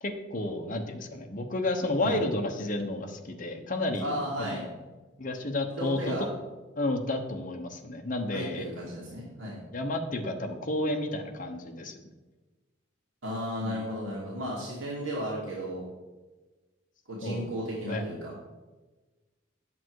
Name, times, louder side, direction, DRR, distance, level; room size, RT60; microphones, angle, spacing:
voice 1, 0.0-4.6 5.2-6.1 6.8-8.6 9.7-11.9 13.6-13.8 17.2-17.4 17.8-18.0, left 2 dB, 45° left, 4 dB, 1.0 m, -31 dB
voice 2, 4.0-4.6 5.8-6.3 8.3-9.6 13.2-15.8 17.1-18.3, equal, 85° right, -5 dB, 2.4 m, -34 dB
8.8 x 7.7 x 4.7 m, 1.2 s
head